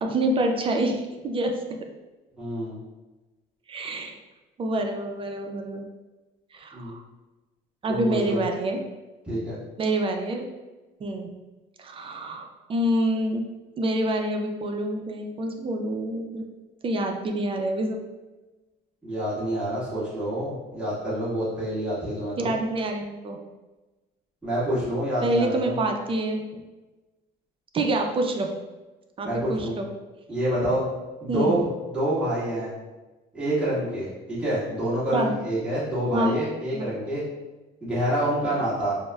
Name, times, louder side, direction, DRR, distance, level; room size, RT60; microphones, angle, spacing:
voice 1, 0.0-1.9 3.7-4.1 4.6-5.8 6.5-7.0 7.8-8.8 9.8-10.4 11.0-11.3 11.8-13.4 13.8-16.4 16.8-18.0 22.4-23.4 25.2-26.6 27.7-28.5 29.2-29.9 31.3-31.6 35.1-35.3 36.1-36.3 36.7-36.8, right 1 dB, 30° right, 3 dB, 0.4 m, -27 dB
voice 2, 2.4-2.8 6.7-6.9 7.9-8.4 9.2-9.6 19.0-22.6 24.4-25.8 29.2-29.8 30.3-30.9 31.2-32.7 33.3-37.2 37.8-38.9, right 1 dB, 5° right, -11 dB, 1.4 m, -27 dB
4.2 x 2.0 x 2.2 m, 1.1 s
cardioid pair, 110°, 17 cm